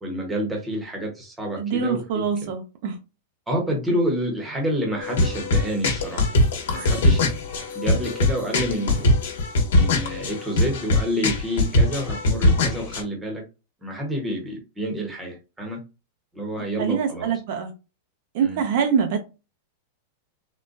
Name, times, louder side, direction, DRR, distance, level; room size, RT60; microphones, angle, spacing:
voice 1, 0.0-2.5 3.5-6.2 6.7-7.2 7.7-9.2 9.7-13.4 13.8-15.8 16.3-17.3 18.4-18.6, equal, 10° right, 0.9 m, -28 dB
voice 2, 1.6-3.0 6.7-7.0 16.6-17.7 18.3-19.2, right 6 dB, 50° right, 0.5 m, -25 dB
sound 1, 5.0-13.0, left 2 dB, 75° left, 1.0 m, -21 dB
3.7 x 2.2 x 2.5 m
supercardioid pair, 165°, 0 cm